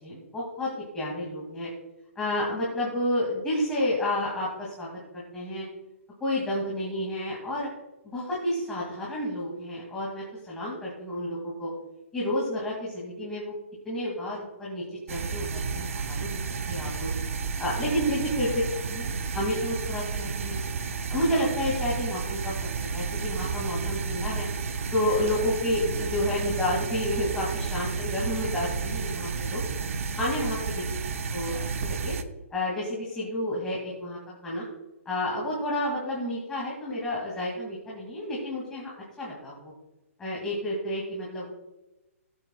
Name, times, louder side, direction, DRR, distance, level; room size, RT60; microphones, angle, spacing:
voice 1, 0.0-1.7 2.2-5.6 6.2-7.7 8.0-11.7 12.1-13.5 13.8-16.3 16.7-17.1 17.6-18.6 18.9-20.6 21.1-22.6 22.9-24.5 24.9-29.7 30.1-30.8 31.3-32.1 32.5-34.6 35.1-39.7 40.2-41.5, left 1 dB, 10° left, -6 dB, 2.3 m, -30 dB
sound 1, 15.1-32.2, right 5 dB, 65° right, 1.1 m, -31 dB
19.5 x 8.4 x 2.3 m, 1.0 s
hypercardioid pair, 165°, 8 cm